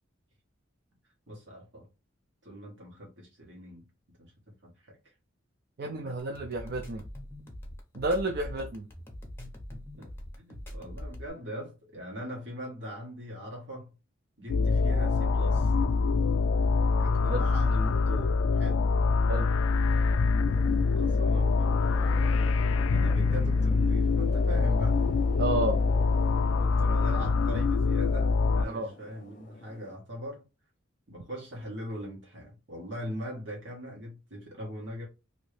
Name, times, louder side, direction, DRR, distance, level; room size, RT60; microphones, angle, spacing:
voice 1, 1.3-1.9 2.4-3.8 4.2-4.3 4.6-5.0 5.8-6.4 9.7-13.9 14.4-15.7 17.0-18.9 21.0-22.5 22.9-25.0 26.6-30.4 31.1-35.1, equal, 65° right, 1.6 m, -41 dB
voice 2, 5.8-7.0 7.9-8.9 17.3-17.4 19.3-19.5 25.4-25.8 28.7-28.9, right 2 dB, 50° right, 0.4 m, -31 dB
sound 1, 6.2-11.3, left 1 dB, 10° left, 0.8 m, -42 dB
sound 2, 14.5-28.7, left 4 dB, 90° left, 0.3 m, -25 dB
sound 3, 20.5-30.0, left 2 dB, 40° left, 0.7 m, -45 dB
3.1 x 2.7 x 3.2 m
head